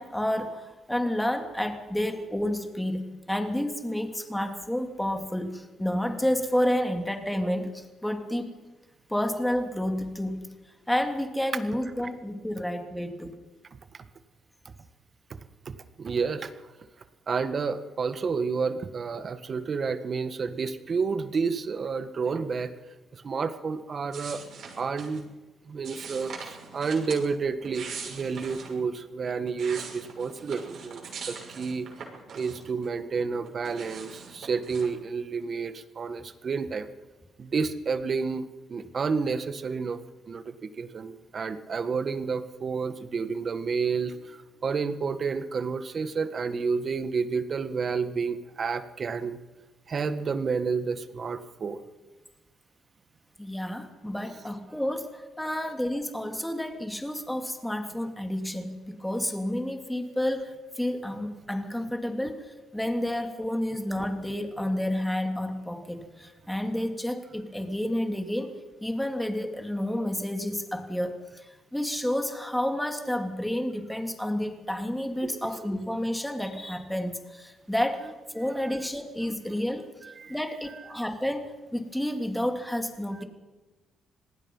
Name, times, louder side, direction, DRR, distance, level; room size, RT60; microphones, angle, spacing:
voice 1, 0.0-8.5 9.1-10.5 10.9-13.3 53.4-68.6 68.8-71.4 71.7-79.8 80.3-81.4 81.7-83.2, left 1 dB, 5° left, 5 dB, 2.9 m, -30 dB
voice 2, 16.0-16.7 17.3-22.7 23.1-24.4 24.8-25.3 25.7-31.9 32.3-36.9 37.4-40.0 40.3-49.4 49.9-51.8 54.7-54.8 75.2-75.5 78.4-78.8 80.0-80.4 83.2-83.3, right 5 dB, 45° right, 11 dB, 1.6 m, -30 dB
sound 1, 24.1-25.2 25.8-27.2 27.6-28.7 29.3-32.9 33.2-34.9, right 5 dB, 65° right, 6.2 m, -42 dB
26.5 x 19.0 x 5.6 m, 1.2 s
cardioid pair, 90°, 0 cm